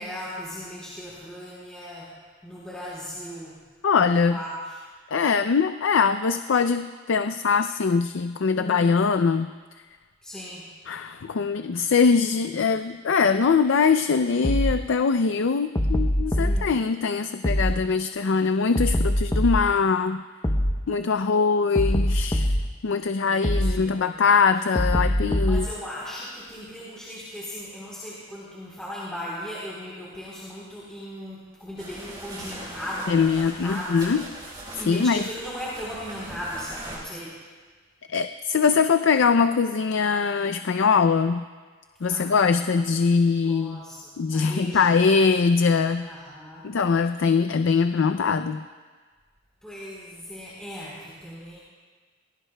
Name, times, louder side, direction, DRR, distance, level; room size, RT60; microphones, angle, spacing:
voice 1, 0.0-2.1 2.4-3.6 4.1-4.9 8.5-8.9 10.2-10.6 16.3-16.7 23.3-24.1 25.4-34.2 34.8-37.4 42.1-42.6 43.3-44.9 46.0-46.7 49.6-51.6, equal, 5° left, -8 dB, 3.7 m, -37 dB
voice 2, 3.8-4.4 5.1-9.5 10.9-20.2 20.9-22.6 22.8-25.7 33.1-34.2 34.9-35.2 38.1-41.4 42.0-43.8 44.2-46.1 46.6-48.6, left 5 dB, 70° left, 9 dB, 0.4 m, -22 dB
sound 1, 14.4-14.8 15.8-16.6 17.4-17.8 18.8-19.7 20.4-20.8 21.8-22.7 23.4-23.8 24.8-25.7, equal, 20° left, 0.8 m, -22 dB
sound 2, 31.8-37.0, right 1 dB, 20° right, 4.9 m, -40 dB
28.0 x 20.0 x 2.3 m, 1.5 s
head